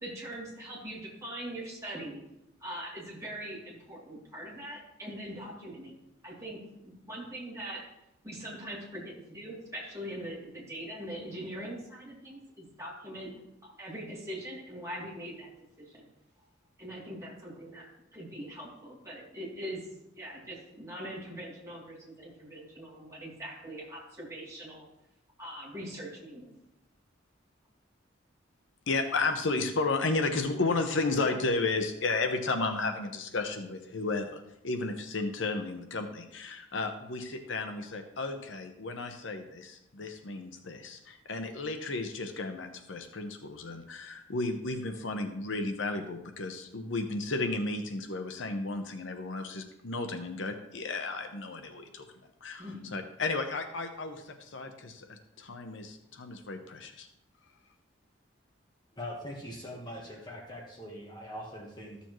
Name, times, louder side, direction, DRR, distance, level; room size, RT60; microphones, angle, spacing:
voice 1, 0.0-2.2 2.6-6.0 6.2-7.9 8.2-13.3 13.6-15.5 15.8-16.1 16.8-19.9 20.2-24.8 25.4-26.5 52.6-52.9, right 1 dB, 15° right, -5 dB, 2.7 m, -42 dB
voice 2, 28.9-52.1 52.4-52.7 52.9-57.1, left 3 dB, 75° left, 7 dB, 0.8 m, -33 dB
voice 3, 59.0-62.0, equal, 20° left, -1 dB, 1.3 m, -42 dB
13.5 x 6.9 x 3.0 m, 0.84 s
head